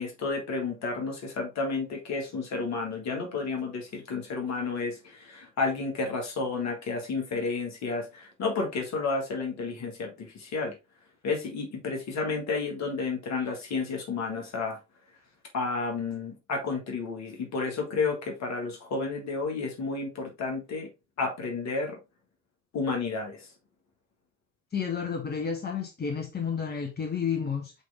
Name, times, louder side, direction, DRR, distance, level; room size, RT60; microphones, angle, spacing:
voice 1, 0.0-10.7 11.2-14.8 15.5-20.9 21.2-22.0 22.7-23.5, left 4 dB, 55° left, 2.2 m, -31 dB
voice 2, 24.7-27.7, left 6 dB, 30° left, 1.3 m, -31 dB
7.6 x 3.5 x 3.6 m
figure-of-eight pair, 45°, 34 cm